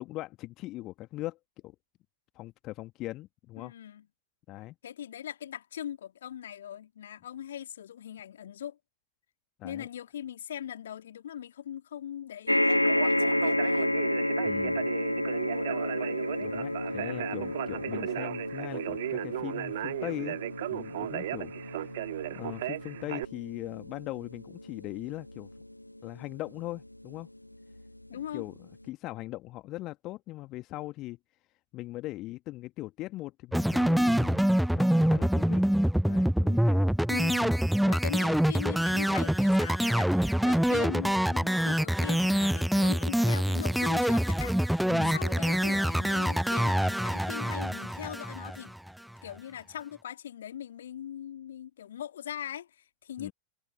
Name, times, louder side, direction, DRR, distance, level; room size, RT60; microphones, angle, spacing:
voice 1, 0.0-1.4 1.6-1.7 2.3-3.7 4.5-4.7 9.6-9.9 14.4-14.9 16.4-20.4 20.7-22.0 22.3-25.5 26.0-27.3 28.3-28.5 28.9-31.2 31.7-34.5 34.7-35.6 36.0-36.9 44.9-45.2 53.2-53.3, left 17 dB, 35° left, 1.4 m, -40 dB
voice 2, 3.6-4.1 4.8-8.8 9.6-13.9 28.1-28.4 37.1-37.6 37.9-44.6 45.1-48.7 49.2-53.3, left 10 dB, 65° left, 2.7 m, -40 dB
sound 1, 12.5-27.0 27.8-27.9 28.1-28.2, left 1 dB, 85° left, 0.6 m, -31 dB
Conversation, 12.7-23.2, right 14 dB, 55° right, 2.5 m, -36 dB
sound 2, 33.5-48.9, equal, ahead, 0.6 m, -25 dB
figure-of-eight pair, 90°, 0 cm